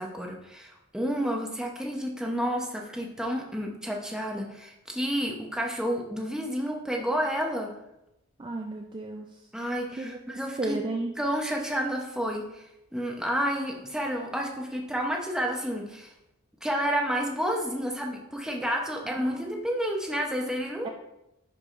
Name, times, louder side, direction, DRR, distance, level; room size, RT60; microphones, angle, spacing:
voice 1, 0.0-7.8 9.5-10.8 11.2-16.1 16.6-20.9, equal, 5° right, 0 dB, 0.8 m, -30 dB
voice 2, 8.4-9.3 10.0-11.1 19.1-19.6 20.8-20.9, right 2 dB, 20° right, 2 dB, 0.4 m, -34 dB
11.0 x 4.8 x 2.6 m, 0.87 s
head